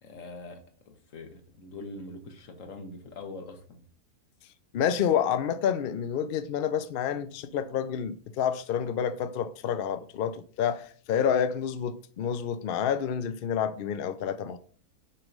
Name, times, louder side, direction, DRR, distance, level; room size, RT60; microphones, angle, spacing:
voice 1, 0.0-3.8, left 2 dB, 60° left, 1.5 m, -43 dB
voice 2, 4.7-14.6, left 8 dB, 80° left, 0.5 m, -29 dB
6.9 x 3.1 x 5.1 m
omnidirectional pair, 1.6 m